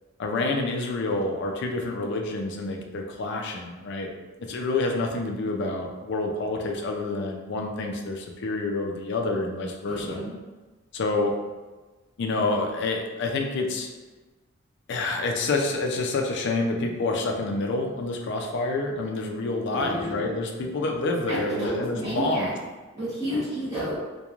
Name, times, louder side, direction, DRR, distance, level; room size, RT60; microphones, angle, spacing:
voice 1, 0.2-4.1 4.4-10.2 10.9-11.3 12.2-13.9 14.9-22.5, left 2 dB, 60° left, 2 dB, 0.4 m, -28 dB
voice 2, 9.8-10.4 19.7-20.2 21.3-22.5 22.9-23.9, equal, 15° right, -14 dB, 0.8 m, -30 dB
2.9 x 2.2 x 2.4 m, 1.2 s
head